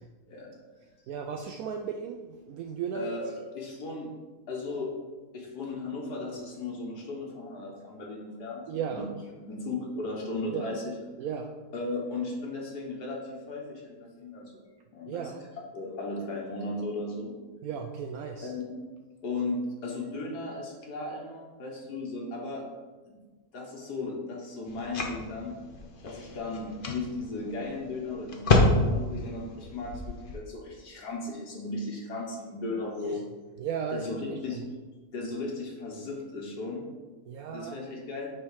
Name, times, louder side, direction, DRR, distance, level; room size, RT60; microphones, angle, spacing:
voice 1, 1.1-3.1 8.7-9.1 10.5-10.7 11.2-11.6 15.1-15.4 17.6-18.5 33.0-33.2 33.6-34.6 37.3-37.8, right 7 dB, 70° right, 4 dB, 1.0 m, -35 dB
voice 2, 2.9-4.1 4.5-4.9 5.3-8.6 8.9-9.1 9.5-11.0 11.7-14.5 14.9-15.2 15.7-17.3 18.4-18.7 19.2-22.6 23.1-23.2 23.5-25.6 26.0-33.2 33.9-34.6 35.1-36.8 37.5-38.3, left 2 dB, 85° left, -1 dB, 1.9 m, -36 dB
sound 1, 24.7-30.4, left 2 dB, 45° left, 0.8 m, -29 dB
7.1 x 3.8 x 5.6 m, 1.3 s
omnidirectional pair, 1.7 m